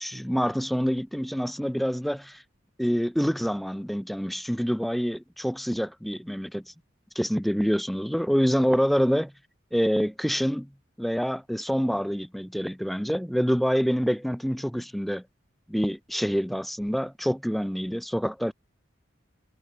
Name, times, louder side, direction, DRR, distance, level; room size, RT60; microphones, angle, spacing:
voice 1, 0.0-2.4 2.8-6.7 7.2-9.3 9.7-10.7 11.0-15.2 15.7-18.5, equal, ahead, 0.4 m, -26 dB
head